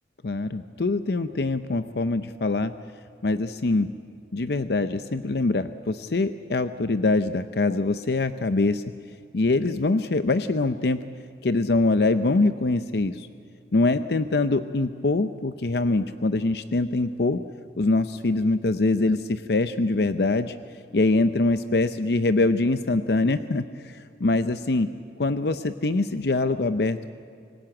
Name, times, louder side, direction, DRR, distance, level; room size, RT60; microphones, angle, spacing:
voice 1, 0.2-2.7 3.2-3.9 4.3-8.8 9.3-11.0 11.4-13.3 13.7-17.4 17.8-20.5 20.9-24.9 25.2-27.1, left 2 dB, 65° left, 10 dB, 0.6 m, -24 dB
25.5 x 17.0 x 8.9 m, 2.5 s
head